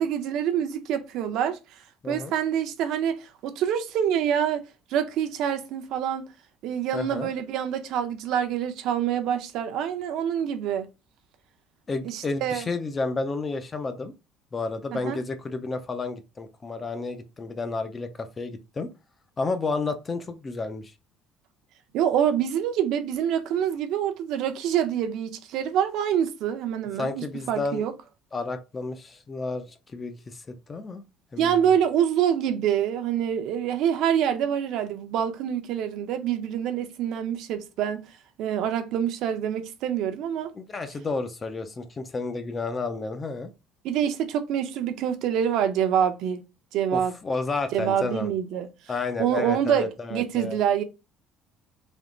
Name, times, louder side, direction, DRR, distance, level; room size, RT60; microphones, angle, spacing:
voice 1, 0.0-1.6 2.0-4.6 4.9-6.3 6.6-10.9 12.0-12.7 14.9-15.2 21.9-27.9 31.4-38.1 38.4-40.5 43.8-46.4 46.7-47.1 47.7-48.7 49.2-50.8, right 9 dB, 60° right, 0.6 m, -26 dB
voice 2, 6.9-7.3 11.9-14.1 14.5-18.9 19.4-20.9 27.0-27.8 28.3-29.7 29.9-30.4 30.7-31.0 31.3-31.8 40.5-43.5 46.9-48.3 48.9-50.6, left 3 dB, 20° left, 0.4 m, -31 dB
3.5 x 2.9 x 3.7 m
cardioid pair, 175°, 0 cm